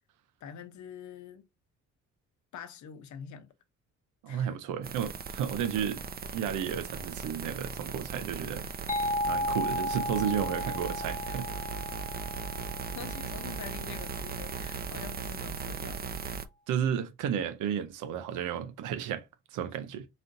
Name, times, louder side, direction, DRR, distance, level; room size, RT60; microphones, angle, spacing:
voice 1, 0.4-1.5 2.5-3.5 4.3-4.6 12.9-16.4, left 8 dB, 70° left, 0.8 m, -45 dB
voice 2, 4.2-8.6 9.3-11.5 16.7-19.3 19.5-20.1, right 8 dB, 90° right, 0.6 m, -33 dB
sound 1, 4.8-16.4, right 5 dB, 30° right, 0.5 m, -38 dB
sound 2, 8.9-14.4, left 1 dB, 25° left, 1.0 m, -35 dB
4.2 x 2.6 x 3.8 m
cardioid pair, 90°, 30 cm